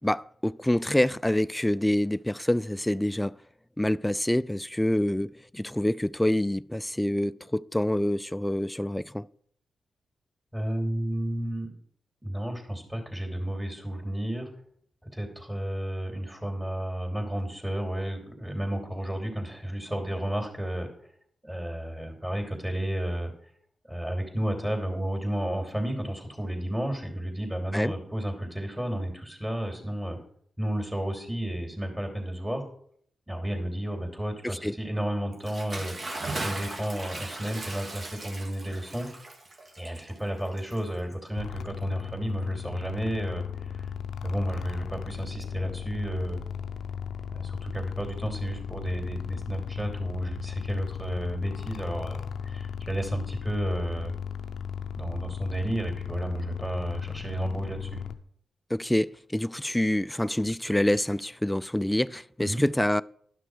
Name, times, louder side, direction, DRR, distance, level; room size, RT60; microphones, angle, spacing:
voice 1, 0.0-3.3 3.8-9.2 27.7-27.9 34.4-34.8 58.7-63.0, left 1 dB, 10° left, 0.3 m, -26 dB
voice 2, 10.5-11.7 12.2-14.5 15.1-20.9 21.4-23.3 23.9-30.2 30.6-32.6 33.3-39.1 39.8-43.4 43.8-43.9 44.2-46.4 47.3-54.1 54.9-58.0 62.4-62.6, right 1 dB, 15° right, 2.9 m, -32 dB
Bathtub (filling or washing) / Splash splatter, 35.3-41.3, right 2 dB, 50° right, 1.7 m, -38 dB
sound 1, 41.4-58.1, left 7 dB, 80° left, 0.5 m, -36 dB
11.5 x 6.0 x 4.8 m
supercardioid pair, 40°, 0 cm